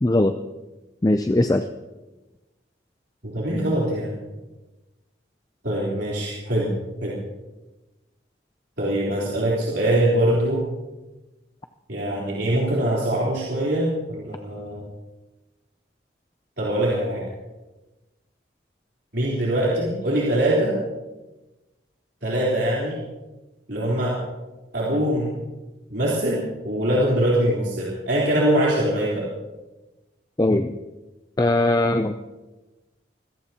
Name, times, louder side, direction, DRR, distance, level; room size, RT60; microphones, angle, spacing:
voice 1, 0.0-0.3 1.0-1.7 30.4-30.8 31.4-32.1, left 1 dB, 20° left, 7 dB, 0.4 m, -20 dB
voice 2, 3.2-4.1 5.6-6.7 7.0-7.2 8.8-10.6 11.9-14.8 16.6-17.2 19.1-20.8 22.2-23.0 23.7-24.2 24.7-25.3 25.9-29.2, right 1 dB, 70° right, -6 dB, 3.8 m, -23 dB
26.0 x 17.0 x 2.9 m, 1.1 s
head